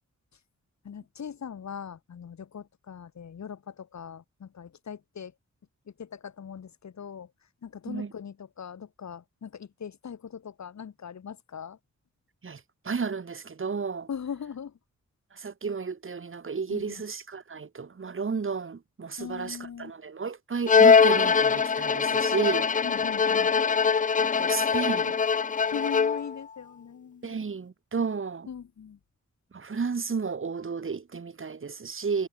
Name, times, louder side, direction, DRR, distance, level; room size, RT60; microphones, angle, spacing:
voice 1, 0.8-5.3 6.0-7.3 7.6-11.8 14.1-14.7 16.7-17.0 19.2-19.9 22.8-23.5 25.7-27.4 28.5-29.0, left 7 dB, 70° left, 2.0 m, -40 dB
voice 2, 12.4-14.1 15.3-22.7 24.2-25.2 27.2-28.5 29.5-32.3, right 5 dB, 45° right, 3.1 m, -32 dB
Bowed string instrument, 20.7-26.4, left 6 dB, 30° left, 0.4 m, -22 dB
wide cardioid pair, 160°, 29 cm